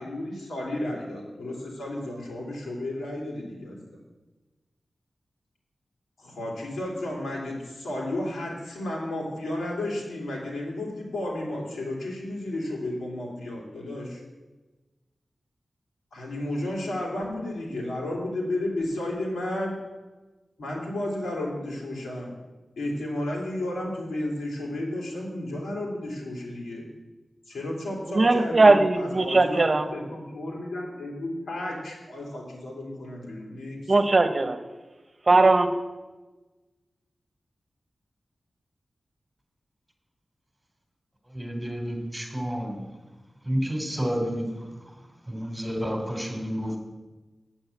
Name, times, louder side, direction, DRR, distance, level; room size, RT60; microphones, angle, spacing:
voice 1, 0.0-3.8 6.2-14.2 16.1-19.8 20.6-22.3 22.8-26.8 27.5-33.9, left 1 dB, 90° left, -3 dB, 3.2 m, -32 dB
voice 2, 28.1-29.8 33.9-34.6 35.3-35.7, right 3 dB, 45° right, 8 dB, 1.1 m, -19 dB
voice 3, 41.3-42.8 43.4-44.7 45.3-46.8, equal, 10° right, 2 dB, 3.8 m, -30 dB
8.8 x 7.8 x 8.4 m, 1.2 s
cardioid pair, 55°, 0 cm